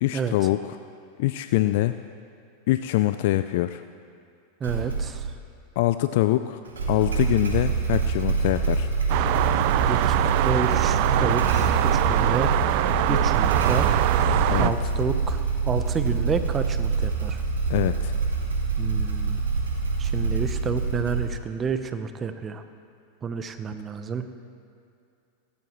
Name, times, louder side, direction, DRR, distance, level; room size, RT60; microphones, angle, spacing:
voice 1, 0.0-0.8 1.2-2.0 2.7-3.8 5.8-6.6 6.9-8.9 13.1-13.2 14.5-14.7 17.7-18.1, left 15 dB, 60° left, 11 dB, 0.4 m, -24 dB
voice 2, 4.6-5.3 9.9-12.6 13.1-13.9 14.6-17.4 18.8-19.4 20.0-22.6 23.2-24.3, right 6 dB, 25° right, 9 dB, 1.0 m, -30 dB
Motorcycle / Engine starting, 4.6-5.3 6.6-21.5, right 4 dB, 85° right, 2.9 m, -25 dB
sound 1, 9.1-14.7, right 14 dB, 55° right, 0.5 m, -24 dB
20.5 x 17.0 x 3.2 m, 2.5 s
hypercardioid pair, 95°, 0 cm